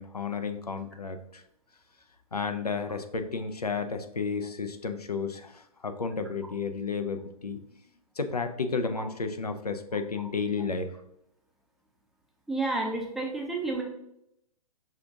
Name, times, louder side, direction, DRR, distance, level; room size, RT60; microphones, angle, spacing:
voice 1, 0.0-1.4 2.3-7.6 8.2-10.9, left 5 dB, 80° left, 8 dB, 0.5 m, -32 dB
voice 2, 12.5-13.8, right 2 dB, ahead, -1 dB, 0.4 m, -30 dB
5.5 x 2.5 x 3.6 m, 0.78 s
figure-of-eight pair, 115°, 19 cm